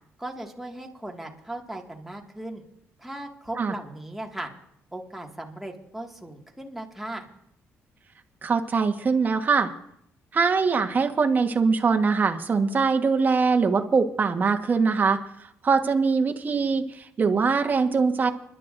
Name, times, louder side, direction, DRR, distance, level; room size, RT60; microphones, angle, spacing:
voice 1, 0.2-2.6 3.0-4.5 4.9-7.3, right 1 dB, 5° right, 0 dB, 2.0 m, -37 dB
voice 2, 8.4-9.7 10.3-18.3, right 5 dB, 35° right, 5 dB, 1.3 m, -22 dB
29.5 x 11.5 x 2.6 m, 0.72 s
cardioid pair, 105°, 5 cm